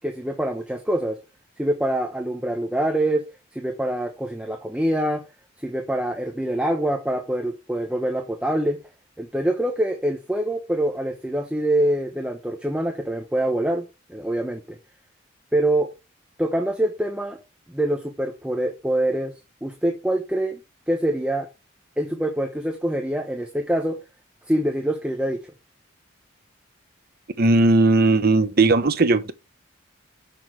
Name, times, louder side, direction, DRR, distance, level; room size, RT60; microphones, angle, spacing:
voice 1, 0.0-1.2 1.6-3.2 3.5-5.2 5.6-8.8 9.2-13.8 14.1-14.8 15.5-15.9 16.4-17.4 17.7-19.3 19.6-20.6 20.9-21.5 22.0-24.0 24.5-25.4, right 1 dB, 5° right, 0.9 m, -25 dB
voice 2, 27.4-29.3, right 2 dB, 50° right, 0.9 m, -17 dB
6.9 x 6.1 x 4.7 m
head